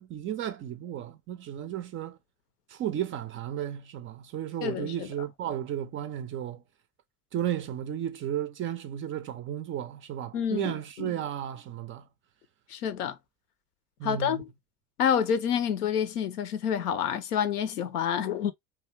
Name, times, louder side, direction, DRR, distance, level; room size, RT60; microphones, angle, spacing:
voice 1, 0.0-2.2 2.7-6.6 7.3-12.1 14.0-14.4, right 10 dB, 30° right, 0.4 m, -34 dB
voice 2, 4.6-5.1 10.3-11.1 12.7-13.2 14.0-14.5 15.0-18.5, left 8 dB, 75° left, 0.6 m, -28 dB
2.8 x 2.3 x 3.1 m
hypercardioid pair, 70°, 46 cm